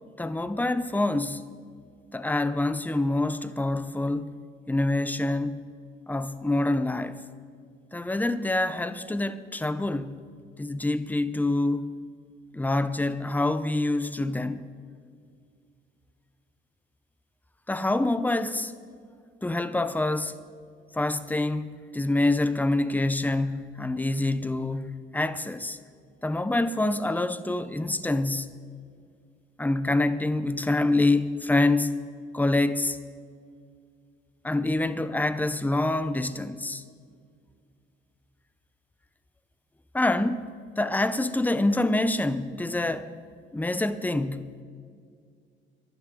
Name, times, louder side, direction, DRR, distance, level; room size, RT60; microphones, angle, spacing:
voice 1, 0.2-1.4 2.1-4.3 4.7-5.6 6.1-7.2 7.9-10.2 10.6-11.9 12.5-14.7 17.7-18.7 19.4-20.3 20.9-25.8 26.2-28.6 29.6-32.0 32.3-33.0 34.4-36.8 39.9-40.5 40.8-43.1 43.5-44.5, left 2 dB, 10° left, 0.7 m, -26 dB
22.5 x 12.0 x 3.8 m
cardioid pair, 90°, 20 cm